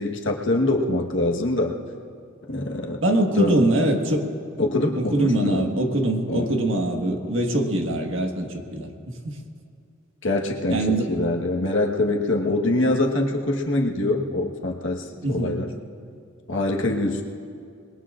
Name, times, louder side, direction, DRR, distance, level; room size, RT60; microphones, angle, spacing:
voice 1, 0.0-1.8 2.5-3.0 3.3-3.6 4.6-5.7 6.3-6.5 10.2-15.7 16.5-17.3, left 2 dB, 65° left, 1 dB, 1.3 m, -24 dB
voice 2, 3.0-4.2 4.9-9.3 10.7-11.1 15.2-15.6, right 1 dB, 70° right, 2 dB, 1.6 m, -23 dB
25.5 x 21.0 x 2.5 m, 2.3 s
head